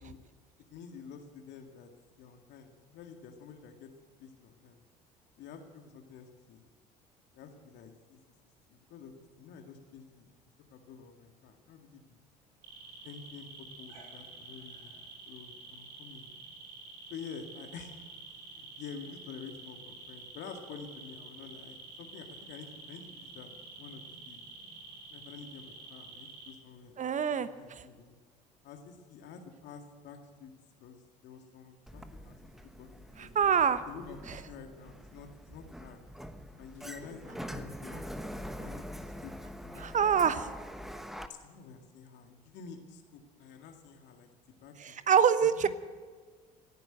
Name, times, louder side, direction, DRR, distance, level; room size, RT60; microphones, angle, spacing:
voice 1, 0.7-1.9 2.2-3.9 4.2-4.8 5.4-6.6 7.3-8.2 8.7-10.3 10.7-12.2 13.0-13.5 13.8-15.0 15.3-16.3 17.1-17.9 18.5-23.5 23.8-24.4 25.1-28.2 28.6-30.5 30.8-33.3 33.9-36.0 36.6-40.1 41.3-44.3 44.6-45.0 45.4-45.7, left 6 dB, 60° left, 4 dB, 2.1 m, -49 dB
sound 1, 12.6-26.5, right 3 dB, 75° right, 3.6 m, -49 dB
voice 2, 27.0-27.9 33.2-33.8 39.8-40.5 44.8-45.7, right 7 dB, 40° right, 13 dB, 1.0 m, -26 dB
Sliding door, 31.9-41.3, equal, ahead, 1.2 m, -44 dB
17.5 x 10.5 x 7.9 m, 1.5 s
hypercardioid pair, 60°, 21 cm